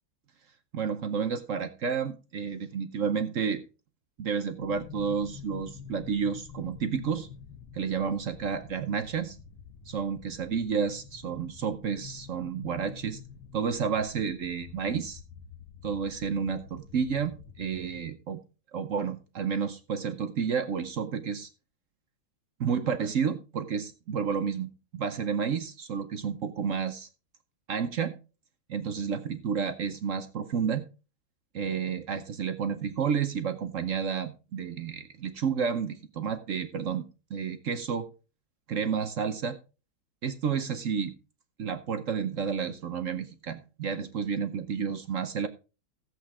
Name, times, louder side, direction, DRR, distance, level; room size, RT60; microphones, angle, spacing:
voice 1, 0.7-3.6 4.2-7.3 7.7-9.4 9.9-13.2 13.5-15.2 15.8-18.4 18.7-21.5 22.6-27.1 27.7-28.1 28.7-30.9 31.5-37.0 37.3-38.1 38.7-39.6 40.2-41.1 41.6-45.5, right 6 dB, 65° right, 10 dB, 0.8 m, -31 dB
sound 1, 4.6-18.0, left 6 dB, 65° left, 1.7 m, -48 dB
14.5 x 8.0 x 3.6 m, 0.32 s
omnidirectional pair, 2.2 m